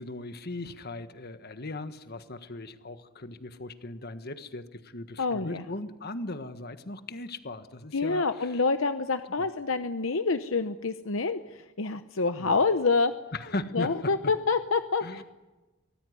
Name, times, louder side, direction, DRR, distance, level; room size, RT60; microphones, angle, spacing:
voice 1, 0.0-8.5 9.4-9.5 12.4-12.5 13.3-14.3 15.0-15.2, left 2 dB, 50° left, 10 dB, 1.5 m, -38 dB
voice 2, 5.2-5.6 7.9-13.1 13.7-15.2, left 4 dB, 65° left, 9 dB, 0.9 m, -27 dB
24.5 x 19.0 x 9.7 m, 1.1 s
head